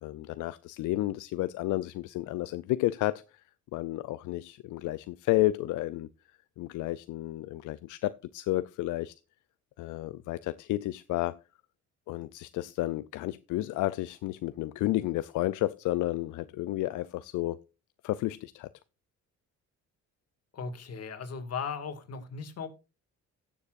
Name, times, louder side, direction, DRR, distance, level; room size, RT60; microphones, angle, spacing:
voice 1, 0.0-3.4 3.7-6.1 6.6-9.1 9.8-11.4 12.1-17.6 18.0-18.7, left 16 dB, 80° left, 0.5 m, -31 dB
voice 2, 20.5-22.7, left 5 dB, 55° left, 2.1 m, -37 dB
16.5 x 7.1 x 2.5 m
cardioid pair, 90°, 30 cm